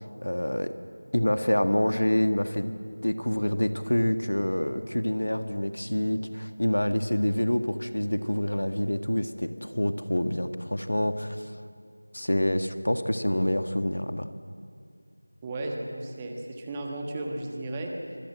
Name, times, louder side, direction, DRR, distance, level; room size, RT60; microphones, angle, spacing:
voice 1, 0.2-0.7 1.1-2.7 3.0-11.5 12.1-14.3, left 1 dB, 70° left, 8 dB, 1.8 m, -27 dB
voice 2, 15.4-18.2, right 1 dB, 10° right, 1 dB, 1.3 m, -34 dB
24.5 x 24.0 x 7.7 m, 2.4 s
figure-of-eight pair, 175°, 0 cm